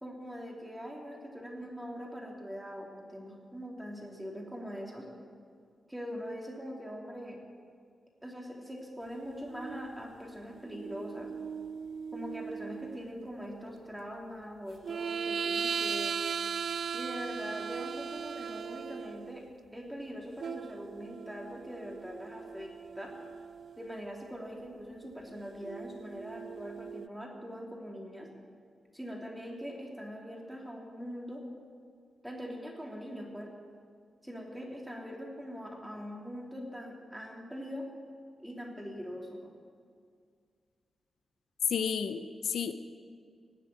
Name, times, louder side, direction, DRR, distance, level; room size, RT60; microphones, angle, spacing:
voice 1, 0.0-5.1 5.9-7.4 8.2-11.3 12.1-16.2 16.9-19.4 19.7-23.1 23.8-28.3 28.9-31.4 32.2-33.5 34.2-37.9 38.4-39.5, equal, 5° right, -1 dB, 3.1 m, -42 dB
sound 1, 9.5-10.0 10.6-13.0 14.8-19.5 20.4-23.9 25.6-27.1, right 6 dB, 65° right, 0.3 m, -38 dB
voice 2, 41.7-42.7, left 7 dB, 85° left, 10 dB, 0.7 m, -32 dB
18.0 x 7.5 x 9.5 m, 2.1 s
wide cardioid pair, 110°, 0 cm